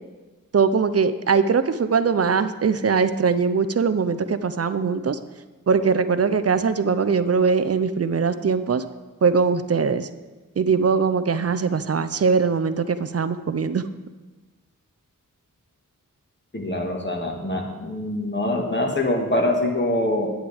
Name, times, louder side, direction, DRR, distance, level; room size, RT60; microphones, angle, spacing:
voice 1, 0.5-5.2 5.7-8.8 9.2-10.1 10.6-13.8, right 5 dB, 45° right, 12 dB, 0.5 m, -21 dB
voice 2, 16.5-20.3, left 1 dB, 30° left, 1 dB, 1.5 m, -24 dB
9.8 x 8.8 x 3.4 m, 1.2 s
wide cardioid pair, 70°, 34 cm